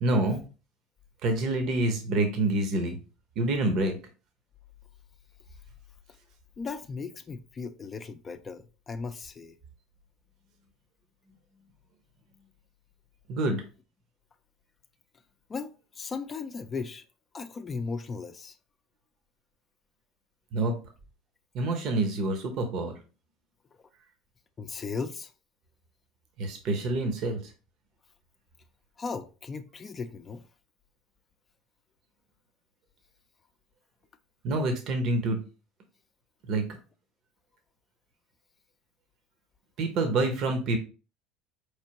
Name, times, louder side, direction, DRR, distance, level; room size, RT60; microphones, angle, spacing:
voice 1, 0.0-0.4 1.2-3.0 3.4-4.0 13.3-13.6 20.5-20.7 21.5-22.9 26.4-27.4 34.4-35.4 36.5-36.6 39.8-40.8, right 2 dB, 55° right, 0.9 m, -27 dB
voice 2, 6.6-9.6 15.5-17.0 17.3-18.6 24.6-25.3 29.0-30.4, left 4 dB, 30° left, 0.4 m, -37 dB
4.3 x 3.2 x 2.9 m
hypercardioid pair, 70°, 0 cm